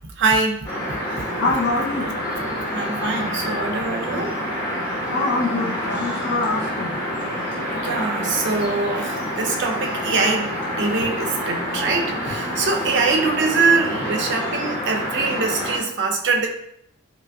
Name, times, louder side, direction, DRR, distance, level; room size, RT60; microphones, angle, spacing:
voice 1, 0.2-1.2 2.7-4.4 7.8-16.5, right 4 dB, 55° right, 3 dB, 0.5 m, -23 dB
sound 1, 0.6-15.8, equal, 20° left, 1.0 m, -27 dB
voice 2, 1.4-2.1 5.1-7.0, left 2 dB, 50° left, 1 dB, 0.7 m, -24 dB
4.9 x 2.4 x 2.2 m, 0.71 s
head